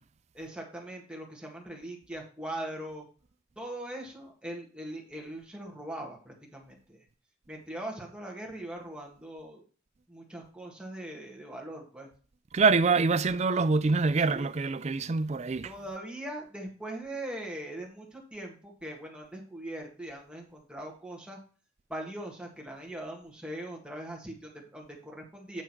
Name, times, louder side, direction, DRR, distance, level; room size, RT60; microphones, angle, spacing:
voice 1, 0.3-3.1 3.5-7.0 7.5-9.6 10.1-12.1 14.2-14.5 15.6-21.4 21.9-25.6, right 1 dB, 5° right, 1.8 m, -41 dB
voice 2, 12.5-15.7, right 4 dB, 35° right, 0.4 m, -25 dB
9.1 x 3.7 x 6.0 m
head